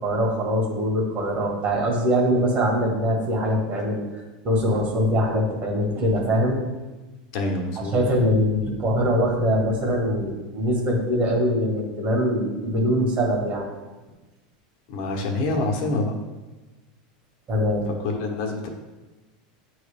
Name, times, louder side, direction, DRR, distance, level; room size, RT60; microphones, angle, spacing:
voice 1, 0.0-4.0 4.4-6.6 7.9-13.6 17.5-17.9, equal, 40° right, 0 dB, 1.6 m, -22 dB
voice 2, 7.3-8.0 14.9-16.1 18.0-18.7, left 2 dB, 60° left, 1 dB, 1.1 m, -26 dB
9.2 x 3.2 x 3.4 m, 1.2 s
supercardioid pair, 135°, 4 cm